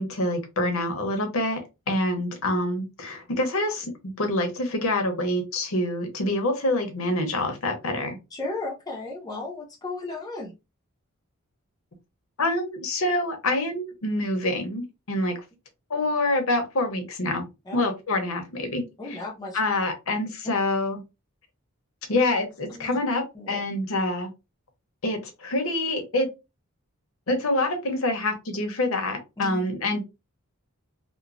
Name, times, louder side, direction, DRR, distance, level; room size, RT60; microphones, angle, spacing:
voice 1, 0.0-8.2 12.4-15.4 15.9-17.5 17.7-18.8 19.1-19.2 19.5-21.0 22.1-24.3 25.0-26.3 27.3-30.0, left 1 dB, 70° left, 0.7 m, -26 dB
voice 2, 8.3-10.5 17.7-17.8 19.0-19.6 22.7-23.0 23.3-23.6 29.4-29.7, left 2 dB, 15° left, 0.5 m, -35 dB
3.0 x 2.0 x 2.5 m
head